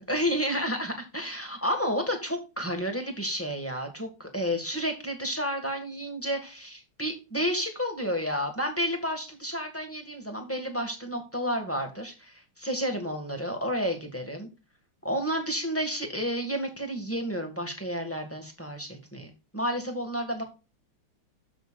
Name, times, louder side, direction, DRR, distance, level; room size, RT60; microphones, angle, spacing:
voice 1, 0.0-14.5 15.0-20.4, equal, 5° left, 4 dB, 1.7 m, -31 dB
12.5 x 6.3 x 2.5 m, 0.29 s
omnidirectional pair, 2.3 m